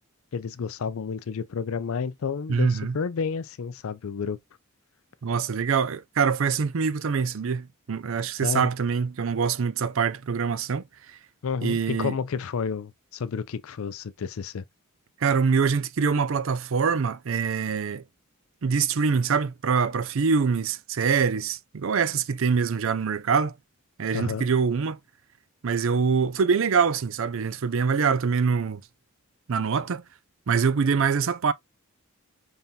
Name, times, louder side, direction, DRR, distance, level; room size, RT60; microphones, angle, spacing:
voice 1, 0.3-4.4 8.4-8.7 11.4-14.6 24.1-24.4, left 6 dB, 70° left, 0.4 m, -30 dB
voice 2, 2.5-3.0 5.2-11.2 11.6-12.2 15.2-18.0 18.6-23.5 24.0-25.0 25.6-28.8 29.5-30.0 30.5-31.5, right 5 dB, 60° right, 0.5 m, -24 dB
5.5 x 3.4 x 2.7 m
head